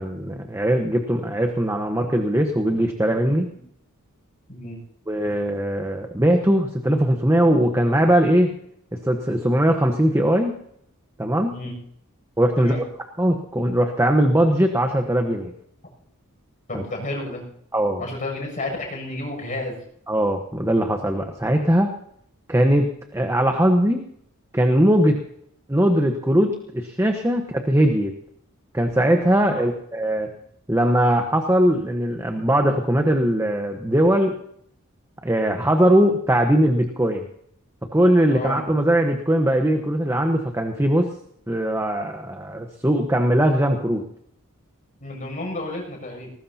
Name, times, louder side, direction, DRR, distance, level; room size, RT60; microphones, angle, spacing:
voice 1, 0.0-3.5 5.1-8.5 9.1-10.5 11.2-11.5 12.4-12.8 13.2-15.5 16.7-16.8 17.7-18.0 20.1-21.9 22.5-24.0 24.5-25.2 25.7-28.1 28.7-30.3 30.7-34.3 35.2-37.3 37.9-41.1 41.5-44.0, right 1 dB, 15° right, 4 dB, 1.2 m, -20 dB
voice 2, 4.5-4.8 11.5-11.8 12.6-12.8 16.7-17.4 18.0-19.8 29.4-29.7 38.3-38.6 45.0-46.3, left 2 dB, 35° left, 0 dB, 7.2 m, -31 dB
21.0 x 19.0 x 2.9 m, 0.69 s
head